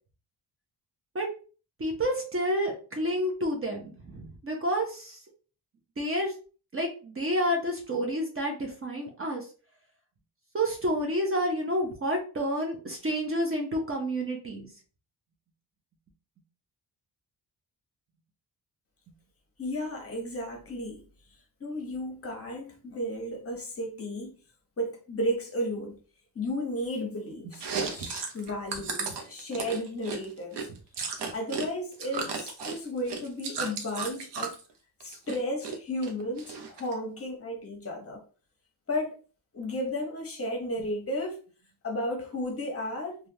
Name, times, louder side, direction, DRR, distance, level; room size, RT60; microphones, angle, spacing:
voice 1, 1.8-5.2 6.0-6.3 6.7-9.5 10.5-14.7 27.7-27.9, equal, 30° right, 0.7 m, -29 dB
voice 2, 19.6-21.0 21.6-24.4 24.8-25.9 26.3-30.6 31.3-34.5 35.0-38.2 38.9-39.1 39.5-41.4 41.8-43.2, equal, 35° left, 0.9 m, -33 dB
Chewing mastication, 27.5-31.7 31.9-34.6 35.0-35.8 36.0-36.9, right 5 dB, 75° right, 0.7 m, -34 dB
3.3 x 2.3 x 2.7 m
wide cardioid pair, 145°, 42 cm